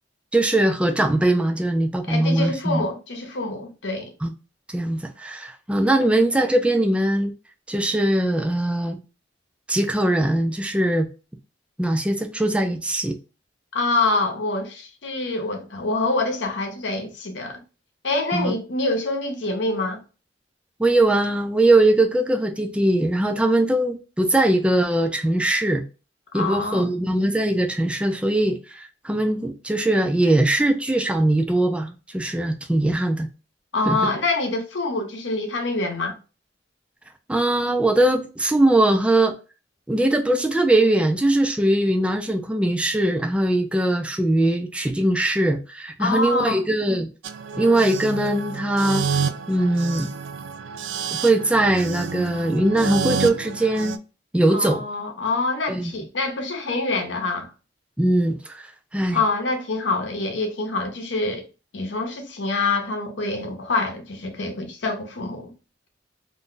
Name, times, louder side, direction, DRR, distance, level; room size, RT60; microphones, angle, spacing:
voice 1, 0.3-2.8 4.2-4.3 4.7-7.3 7.7-9.0 9.7-11.1 11.8-13.2 18.3-18.5 20.8-25.8 26.3-33.3 33.9-34.0 37.3-39.3 39.9-47.1 47.6-49.1 49.5-50.1 51.1-54.0 54.3-54.8 55.7-56.0 58.0-59.2, right 1 dB, 5° right, 0.3 m, -21 dB
voice 2, 2.1-4.1 6.0-6.1 13.7-17.6 18.0-20.0 26.3-26.9 33.7-36.2 46.0-46.6 54.5-57.5 59.1-61.5 61.7-65.5, left 3 dB, 70° left, 0.8 m, -26 dB
sound 1, 47.2-54.0, right 5 dB, 85° right, 0.3 m, -29 dB
2.6 x 2.2 x 3.7 m
head